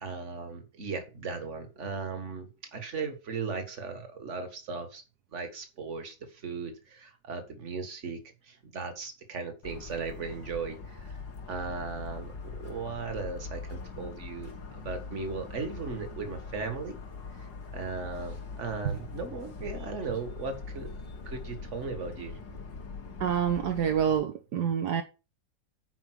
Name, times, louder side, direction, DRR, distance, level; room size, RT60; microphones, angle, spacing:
voice 1, 0.0-5.0 5.3-11.2 11.5-17.0 17.3-20.9 21.3-22.4, right 4 dB, 40° right, 2.0 m, -37 dB
Motor vehicle (road) / Siren, 9.6-24.2, left 4 dB, 85° left, 2.4 m, -42 dB
voice 2, 23.2-25.0, right 8 dB, 70° right, 1.4 m, -27 dB
9.3 x 5.2 x 6.3 m
omnidirectional pair, 1.9 m